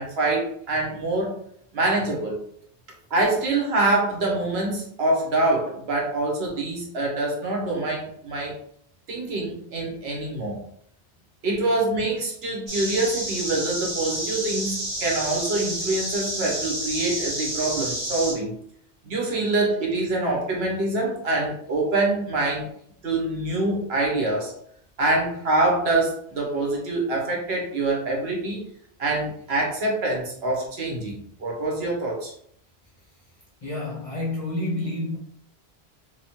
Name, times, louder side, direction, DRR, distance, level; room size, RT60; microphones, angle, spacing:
voice 1, 0.0-1.3 1.7-2.4 3.1-8.6 9.1-10.6 11.4-18.5 19.0-22.7 23.0-24.5 25.0-28.6 29.0-32.3, right 2 dB, 75° right, 1.1 m, -25 dB
sound 1, 12.7-18.3, right 1 dB, 25° right, 0.9 m, -30 dB
voice 2, 33.6-35.2, left 2 dB, 40° left, 0.6 m, -29 dB
3.0 x 2.0 x 2.8 m
omnidirectional pair, 1.1 m